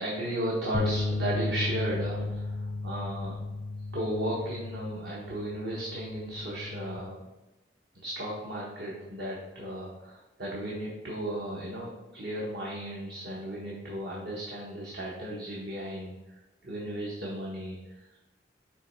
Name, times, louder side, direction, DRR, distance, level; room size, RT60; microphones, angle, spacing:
voice 1, 0.0-3.4 3.9-7.2 7.9-18.2, right 1 dB, 65° right, -5 dB, 1.2 m, -35 dB
sound 1, 0.7-7.0, left 2 dB, 25° left, 0.4 m, -34 dB
7.0 x 3.2 x 4.5 m, 1.0 s
head